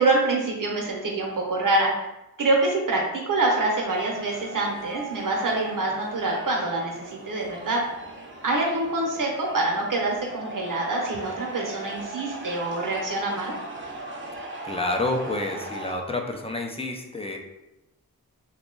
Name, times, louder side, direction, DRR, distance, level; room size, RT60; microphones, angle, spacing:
voice 1, 0.0-2.1 2.4-7.8 8.4-13.5, right 2 dB, 60° right, -1 dB, 1.0 m, -25 dB
sound 1, 3.8-15.9, right 2 dB, 35° right, 0.5 m, -39 dB
voice 2, 14.6-17.4, left 2 dB, 15° left, 2 dB, 0.5 m, -29 dB
2.9 x 2.3 x 3.7 m, 0.95 s
wide cardioid pair, 75°, 36 cm